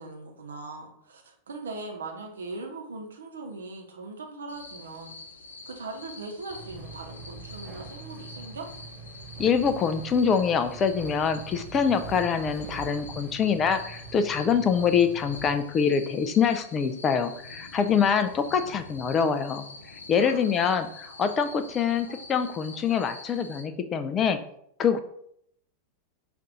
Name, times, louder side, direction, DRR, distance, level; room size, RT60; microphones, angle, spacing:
voice 1, 0.0-5.2 5.7-8.7 20.2-20.7, right 3 dB, 65° right, 2 dB, 0.8 m, -40 dB
sound 1, 4.5-23.6, left 3 dB, 75° left, 0.6 m, -46 dB
sound 2, 6.5-15.5, right 4 dB, 20° right, 1.4 m, -43 dB
voice 2, 9.4-19.6 20.1-20.9 21.2-24.4 24.8-25.0, left 6 dB, 25° left, 9 dB, 0.4 m, -25 dB
5.3 x 2.5 x 3.9 m, 0.70 s
figure-of-eight pair, 90°, 0 cm